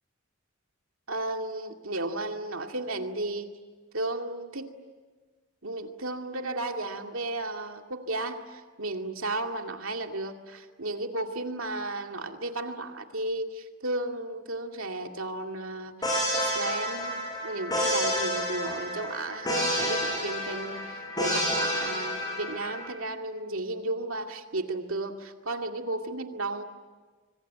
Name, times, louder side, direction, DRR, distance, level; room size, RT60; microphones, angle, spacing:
voice 1, 1.1-3.5 3.9-4.7 5.6-26.6, right 2 dB, 70° right, 4 dB, 2.3 m, -34 dB
sound 1, 16.0-22.9, equal, 15° left, 6.5 m, -29 dB
25.5 x 24.5 x 9.3 m, 1.4 s
head